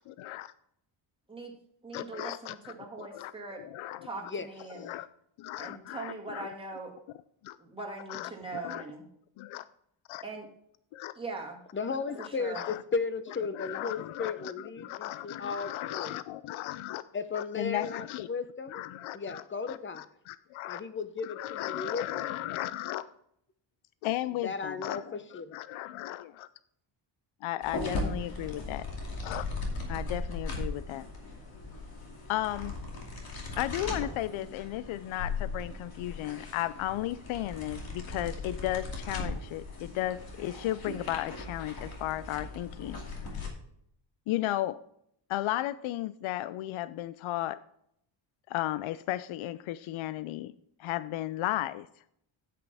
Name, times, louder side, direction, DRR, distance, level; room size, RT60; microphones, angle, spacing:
voice 1, 0.1-0.5 1.9-3.3 3.7-4.1 4.8-5.1 5.4-6.5 7.4-7.6 8.1-8.8 9.4-9.7 10.1-10.2 10.9-11.1 12.2-12.3 12.5-12.8 13.5-17.0 17.3-18.3 18.7-20.8 21.2-23.0 24.0-26.5 27.4-28.8 29.2-29.5 29.9-31.1 32.3-32.7 33.5-43.0 44.3-44.8 45.3-47.6 48.5-50.5 50.8-51.9, left 14 dB, 75° left, 15 dB, 0.5 m, -35 dB
voice 2, 1.8-3.6 4.0-4.9 5.6-6.9 7.6-9.0 10.2-10.5 11.2-11.6 12.2-12.6, right 3 dB, 10° right, -1 dB, 2.1 m, -41 dB
voice 3, 11.7-16.2 17.1-18.8 19.1-20.0 20.7-22.4 24.4-25.6, left 5 dB, 25° left, 12 dB, 0.6 m, -35 dB
sound 1, 27.6-43.5, left 3 dB, 45° left, 2.6 m, -38 dB
9.8 x 8.5 x 3.4 m, 0.71 s
cardioid pair, 145°, 49 cm